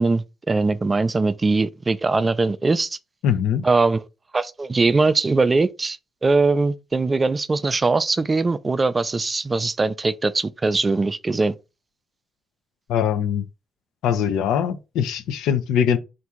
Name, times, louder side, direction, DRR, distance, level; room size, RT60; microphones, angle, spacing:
voice 1, 0.0-3.0 3.6-4.0 4.3-11.5, right 3 dB, 25° right, 0.4 m, -21 dB
voice 2, 3.2-3.7 12.9-13.4 14.0-16.0, left 8 dB, 90° left, 0.5 m, -22 dB
3.5 x 2.6 x 4.3 m
cardioid pair, 90°, 0 cm